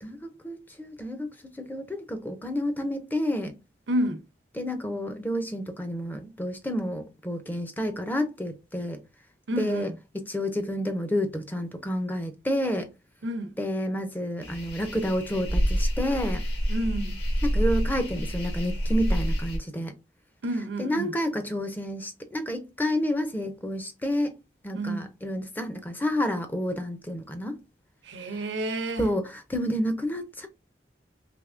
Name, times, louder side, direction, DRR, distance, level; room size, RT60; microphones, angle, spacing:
voice 1, 0.0-3.6 4.6-9.0 9.6-12.9 13.6-16.4 17.4-19.9 20.8-24.3 24.6-27.6 29.0-30.5, equal, 10° left, 0.4 m, -30 dB
voice 2, 3.9-4.2 9.5-9.9 13.2-13.5 16.7-17.2 20.4-21.1 24.7-25.1 28.0-29.1, right 1 dB, 85° right, 0.6 m, -30 dB
sound 1, 14.4-19.6, equal, 60° left, 1.3 m, -27 dB
3.4 x 2.9 x 2.4 m
head